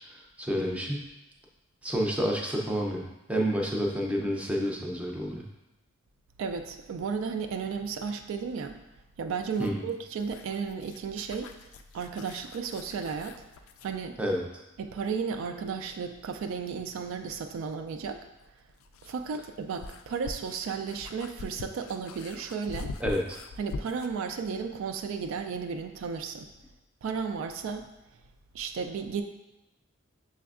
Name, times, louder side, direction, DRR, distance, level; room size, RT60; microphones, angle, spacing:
voice 1, 0.4-1.0 1.8-3.0 3.3-5.4 9.6-9.8 14.2-14.4 23.0-23.2, equal, 5° right, -1 dB, 0.5 m, -29 dB
voice 2, 6.4-8.8 9.2-11.5 11.9-13.4 13.8-14.2 14.8-18.3 19.0-22.9 23.6-26.5 27.0-27.9 28.5-29.2, right 5 dB, 70° right, 6 dB, 0.3 m, -34 dB
sound 1, 9.4-14.0 16.3-16.4 18.4-24.2, left 3 dB, 85° left, 0.3 m, -43 dB
6.0 x 3.3 x 2.4 m, 0.98 s
head